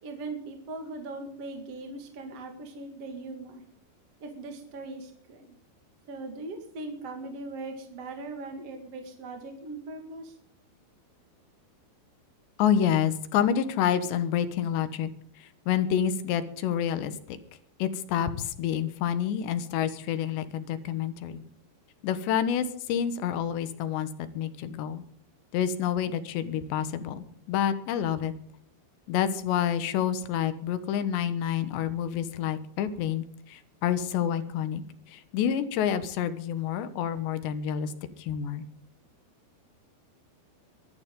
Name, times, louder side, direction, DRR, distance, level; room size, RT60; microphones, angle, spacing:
voice 1, 0.0-3.6 4.2-5.5 6.1-10.4, right 2 dB, 45° right, 3 dB, 2.4 m, -40 dB
voice 2, 12.6-15.1 15.4-17.4 17.8-21.4 22.0-24.1 24.3-25.0 25.5-28.3 29.1-34.8 35.1-37.9 38.2-38.6, left 9 dB, 75° left, 11 dB, 3.4 m, -28 dB
23.0 x 11.5 x 3.9 m, 0.63 s
omnidirectional pair, 5.2 m